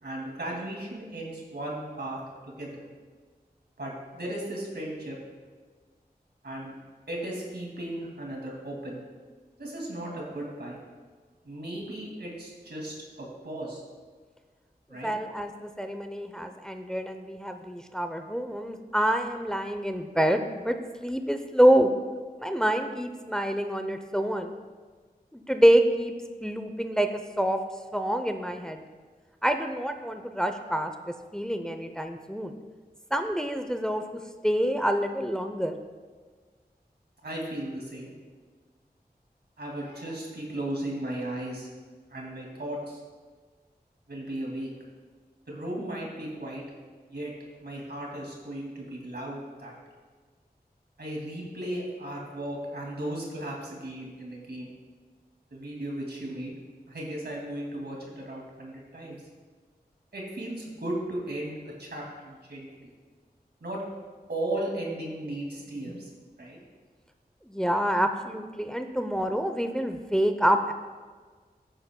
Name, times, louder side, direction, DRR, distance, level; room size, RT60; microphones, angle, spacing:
voice 1, 0.0-2.8 3.8-5.2 6.4-6.7 7.1-9.0 9.6-10.8 11.4-13.8 14.9-15.1 37.2-38.1 39.6-41.7 42.1-43.0 44.1-44.7 45.5-46.6 47.1-47.3 47.6-49.7 51.0-54.7 55.5-56.5 56.9-59.2 60.1-62.9 63.6-63.8 64.3-66.1 66.4-66.6, right 1 dB, 85° right, -2 dB, 2.4 m, -36 dB
voice 2, 15.0-21.9 22.4-24.6 25.3-26.1 26.4-27.1 27.4-27.6 27.9-28.8 29.4-30.9 31.3-32.5 33.1-35.8 67.5-70.7, equal, 5° left, 6 dB, 0.6 m, -26 dB
14.0 x 9.0 x 2.2 m, 1.5 s
wide cardioid pair, 45°, 17 cm